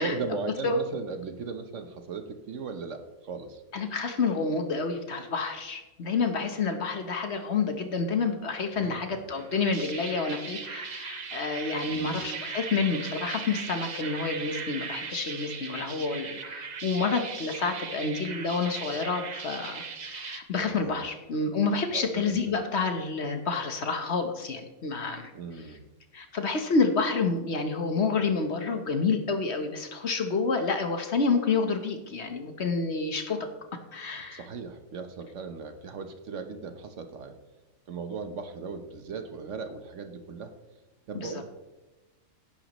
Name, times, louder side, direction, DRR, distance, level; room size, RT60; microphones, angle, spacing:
voice 1, 0.0-3.6 8.8-9.2 11.9-12.2 20.7-21.0 21.9-22.5 25.3-25.8 34.3-37.4 37.9-40.5 41.1-41.4, right 4 dB, 60° right, 7 dB, 1.2 m, -37 dB
voice 2, 3.7-25.3 26.1-33.5 33.9-34.5 41.2-41.4, left 4 dB, 55° left, 6 dB, 1.2 m, -29 dB
sound 1, 9.3-20.4, right 5 dB, 40° right, 0.7 m, -38 dB
17.0 x 10.0 x 3.0 m, 1.1 s
omnidirectional pair, 1.5 m